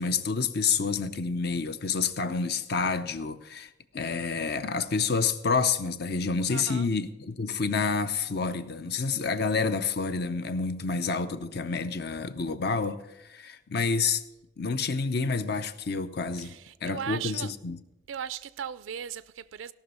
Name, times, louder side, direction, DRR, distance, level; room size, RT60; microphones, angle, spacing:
voice 1, 0.0-14.2 14.6-16.6 16.8-17.8, left 4 dB, 55° left, 0.7 m, -29 dB
voice 2, 6.5-6.9 16.4-17.5 18.1-19.7, right 8 dB, 90° right, 0.4 m, -37 dB
17.0 x 6.1 x 5.6 m
head